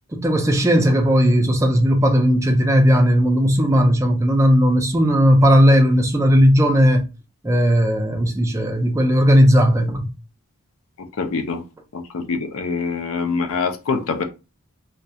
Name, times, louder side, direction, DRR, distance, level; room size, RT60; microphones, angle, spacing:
voice 1, 0.1-7.1 7.4-10.1, equal, 15° right, 0.4 m, -16 dB
voice 2, 11.0-11.6 11.9-14.2, left 4 dB, 70° left, 0.5 m, -25 dB
2.3 x 2.1 x 2.7 m
head